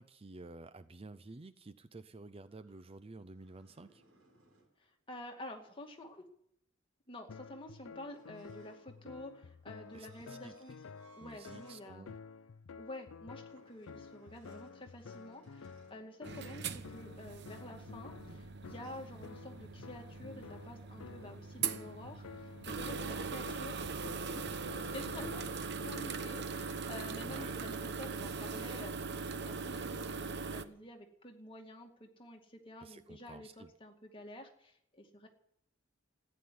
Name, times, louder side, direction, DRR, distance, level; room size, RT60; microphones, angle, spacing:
voice 1, 0.0-4.0 9.9-10.6 11.2-12.2 27.2-27.6 29.7-29.9 32.8-33.7, right 3 dB, 30° right, 12 dB, 0.6 m, -51 dB
sound 1, 2.4-4.8 8.0-11.9 12.3-12.5 13.5-16.1 18.6-19.0, right 3 dB, 75° right, 7.8 m, -66 dB
voice 2, 4.8-6.3 7.1-10.8 11.2-12.1 12.8-24.5 24.8-25.4 25.8-35.3, left 1 dB, 25° left, 3 dB, 2.3 m, -49 dB
sound 2, 7.3-26.4, left 5 dB, 90° left, 0.5 m, -52 dB
sound 3, 16.2-30.7, right 5 dB, 55° right, 0.9 m, -41 dB
14.5 x 9.8 x 9.4 m, 0.73 s
head